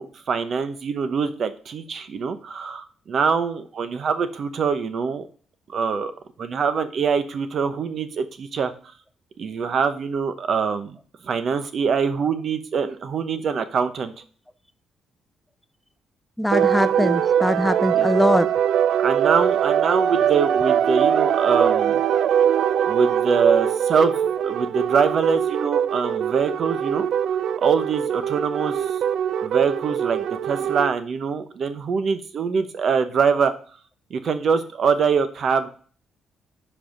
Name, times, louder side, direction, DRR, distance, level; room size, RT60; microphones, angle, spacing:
voice 1, 0.0-5.3 5.7-6.1 6.4-8.7 9.4-11.0 11.2-14.1 17.9-18.1 19.0-22.0 22.9-27.1 27.5-28.9 29.4-33.5 34.1-35.7, right 6 dB, 55° right, 0.9 m, -24 dB
voice 2, 16.4-18.5, left 1 dB, 5° left, 0.5 m, -21 dB
sound 1, 16.5-30.9, right 9 dB, 70° right, 0.3 m, -22 dB
5.6 x 4.9 x 6.4 m
cardioid pair, 95°, 0 cm